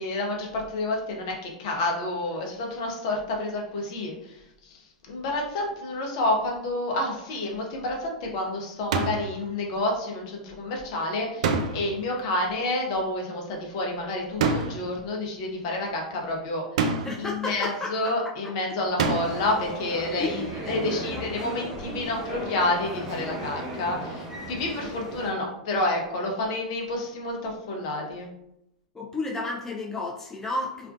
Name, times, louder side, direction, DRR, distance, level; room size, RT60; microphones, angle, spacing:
voice 1, 0.0-16.6 17.2-28.3, left 2 dB, 55° left, 0 dB, 0.7 m, -29 dB
sound 1, 8.9-9.3 11.4-12.1 14.4-14.9 16.8-17.3 19.0-19.5, right 4 dB, 60° right, 0.3 m, -26 dB
voice 2, 17.0-18.1 18.4-18.5 20.2-20.4 20.6-21.3 21.5-21.7 23.9-24.0 28.9-30.9, left 2 dB, 10° left, -2 dB, 0.4 m, -32 dB
sound 2, 19.0-25.3, right 1 dB, 15° right, 1.1 m, -35 dB
2.4 x 2.1 x 2.5 m, 0.79 s
figure-of-eight pair, 95°, 4 cm